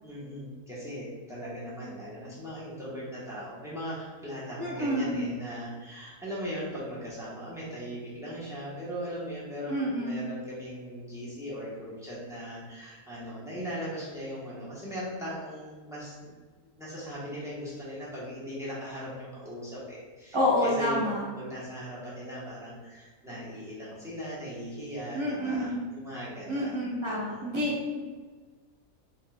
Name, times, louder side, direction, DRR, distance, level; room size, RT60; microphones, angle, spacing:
voice 1, 0.0-16.3 16.8-26.8 27.3-27.5, equal, ahead, -9 dB, 1.1 m, -39 dB
voice 2, 4.6-5.3 9.7-10.2 20.3-21.2 25.1-25.8 26.5-28.0, left 1 dB, 20° right, -5 dB, 1.0 m, -28 dB
4.1 x 3.9 x 2.4 m, 1.4 s
omnidirectional pair, 1.6 m